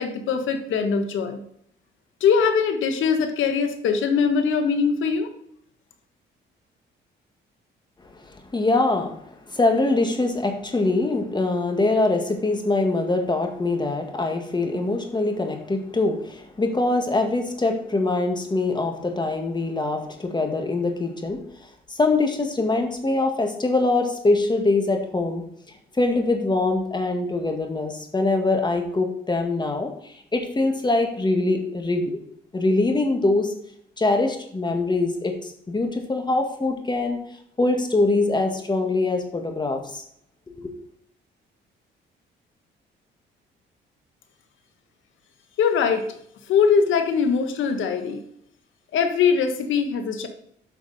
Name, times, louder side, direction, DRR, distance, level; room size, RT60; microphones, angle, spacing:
voice 1, 0.0-1.4 2.2-5.3 45.6-46.0 46.5-48.2 48.9-50.3, left 6 dB, 80° left, 6 dB, 1.4 m, -21 dB
voice 2, 8.3-9.1 9.5-21.4 21.9-25.4 26.0-32.2 32.5-33.5 34.0-37.2 37.6-40.0 40.6-40.7, left 2 dB, 20° left, 4 dB, 1.8 m, -23 dB
8.8 x 5.8 x 4.2 m, 0.68 s
cardioid pair, 90°, 20 cm